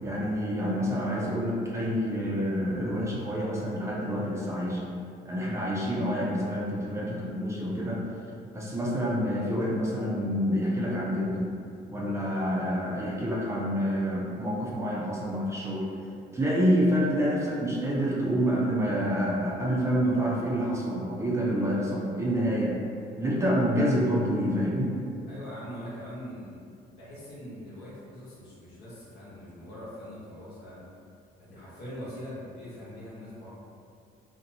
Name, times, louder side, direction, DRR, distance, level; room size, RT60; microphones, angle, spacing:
voice 1, 0.0-4.8 5.2-8.0 8.5-11.5 11.9-15.9 16.3-22.8 23.2-24.9, equal, 15° right, -5 dB, 0.5 m, -27 dB
voice 2, 25.3-26.6 27.0-30.8 31.4-33.5, equal, 75° left, -8 dB, 1.0 m, -42 dB
2.6 x 2.1 x 2.6 m, 2.3 s
cardioid pair, 110°, 17 cm